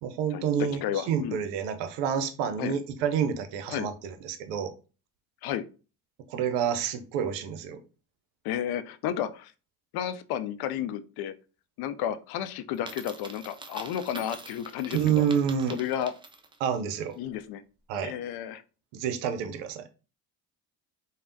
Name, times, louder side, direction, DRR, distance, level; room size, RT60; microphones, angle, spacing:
voice 1, 0.0-4.7 6.3-7.8 14.9-15.8 16.6-17.2 17.9-18.1 18.9-19.9, right 8 dB, 75° right, 9 dB, 0.6 m, -28 dB
voice 2, 0.8-1.4 2.6-2.8 3.7-3.9 5.4-5.7 8.4-9.5 9.9-11.3 11.8-15.3 15.7-16.1 17.2-17.6 18.0-18.6, left 10 dB, 60° left, 12 dB, 0.5 m, -32 dB
Coin (dropping), 12.7-16.7, right 3 dB, 10° right, 0.4 m, -45 dB
3.3 x 2.1 x 2.5 m, 0.34 s
hypercardioid pair, 55°, 43 cm